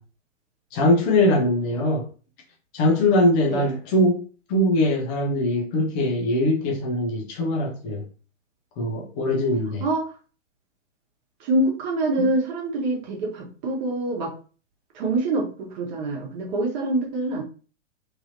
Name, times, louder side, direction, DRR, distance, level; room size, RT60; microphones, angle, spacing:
voice 1, 0.7-2.1 2.7-4.2 4.5-8.0 8.8-9.8 12.2-12.3, left 1 dB, 20° left, 0.4 m, -22 dB
voice 2, 9.8-10.1 11.4-14.3 14.9-17.4, right 2 dB, 35° right, 1.0 m, -25 dB
3.2 x 2.6 x 2.7 m
figure-of-eight pair, 110°, 37 cm